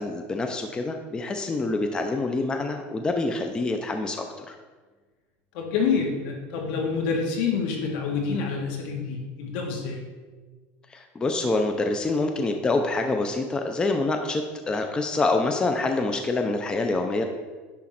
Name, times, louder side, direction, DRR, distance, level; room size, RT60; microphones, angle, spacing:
voice 1, 0.0-4.6 10.9-17.2, left 2 dB, 15° left, 5 dB, 0.6 m, -26 dB
voice 2, 5.5-10.0, left 5 dB, 70° left, 1 dB, 1.8 m, -27 dB
10.0 x 3.7 x 5.9 m, 1.4 s
cardioid pair, 145°, 5 cm